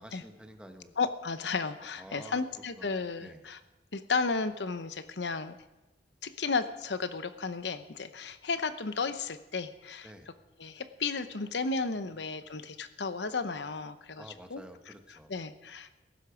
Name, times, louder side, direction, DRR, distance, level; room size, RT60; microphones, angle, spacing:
voice 1, 0.0-0.9 2.0-2.4 2.7-3.4 10.0-10.3 14.2-15.3, equal, 5° right, 6 dB, 1.3 m, -50 dB
voice 2, 1.0-3.6 3.9-5.6 6.2-10.1 10.6-14.2 14.5-14.6 15.3-16.0, left 4 dB, 85° left, 12 dB, 0.9 m, -33 dB
17.0 x 15.5 x 5.1 m, 1.0 s
head